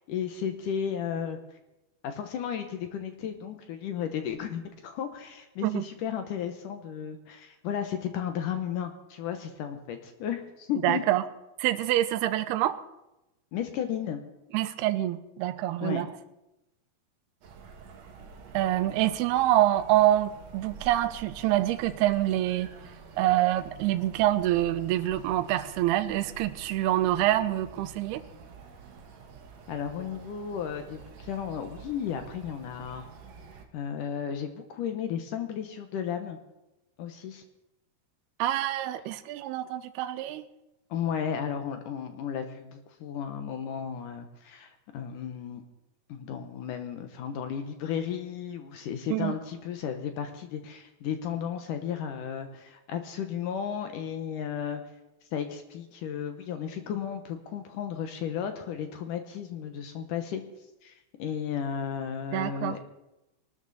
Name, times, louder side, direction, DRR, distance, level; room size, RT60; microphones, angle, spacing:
voice 1, 0.1-1.4 2.0-11.0 13.5-14.2 15.8-16.0 29.7-33.0 33.7-36.4 37.0-37.4 40.9-45.6 46.1-54.8 55.3-60.4 60.8-60.9 61.2-62.8, left 8 dB, 70° left, 7 dB, 2.2 m, -34 dB
voice 2, 10.8-11.2 11.6-12.8 14.5-16.1 18.5-22.7 23.2-28.2 38.4-40.5 49.1-49.4 62.3-62.8, right 14 dB, 85° right, 13 dB, 2.7 m, -26 dB
sound 1, 17.4-33.7, right 5 dB, 60° right, 2.0 m, -48 dB
21.0 x 13.0 x 4.1 m, 0.94 s
omnidirectional pair, 4.6 m